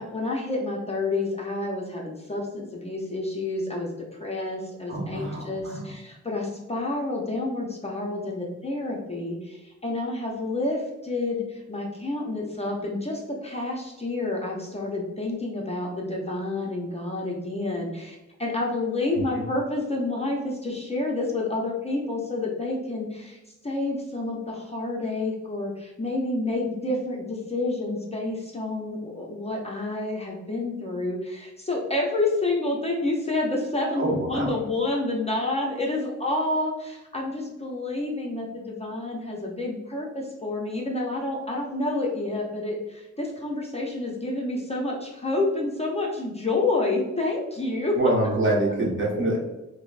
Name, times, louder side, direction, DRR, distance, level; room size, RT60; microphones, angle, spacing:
voice 1, 0.0-3.9 4.2-23.4 23.6-47.9, left 2 dB, 20° left, -2 dB, 0.5 m, -29 dB
voice 2, 4.9-5.9 19.1-19.2 34.0-34.6 48.0-49.4, right 1 dB, 45° right, -2 dB, 0.9 m, -25 dB
5.2 x 2.0 x 2.4 m, 1.0 s
wide cardioid pair, 110°, 29 cm